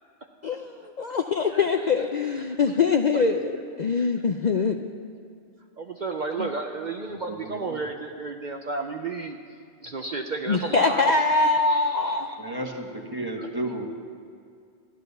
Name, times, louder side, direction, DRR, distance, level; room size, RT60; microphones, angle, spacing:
voice 1, 1.0-3.5 3.8-4.8 10.5-12.3, left 4 dB, 50° left, 5 dB, 0.6 m, -23 dB
voice 2, 1.5-2.8 3.1-3.2 3.9-4.1 5.8-9.4 9.8-12.4 13.4-13.5, right 3 dB, 45° right, 3 dB, 0.7 m, -33 dB
voice 3, 7.3-7.8 12.4-13.9, right 1 dB, 20° right, 2 dB, 1.4 m, -33 dB
14.0 x 10.5 x 6.7 m, 2.3 s
omnidirectional pair, 1.2 m